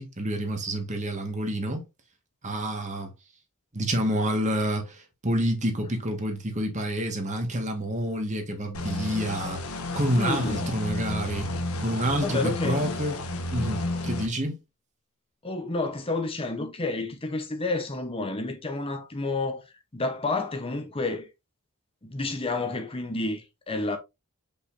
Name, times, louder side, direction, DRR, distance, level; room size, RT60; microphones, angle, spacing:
voice 1, 0.0-1.8 2.4-3.1 3.7-9.6 9.9-11.5 11.8-13.2 13.5-14.6, right 1 dB, 35° right, 1.6 m, -28 dB
sound 1, 8.7-14.3, left 2 dB, 80° left, 1.3 m, -32 dB
voice 2, 10.1-10.8 12.2-12.9 15.4-19.7 19.9-21.3 22.0-24.0, left 2 dB, 25° left, 0.9 m, -30 dB
6.5 x 5.5 x 2.6 m
head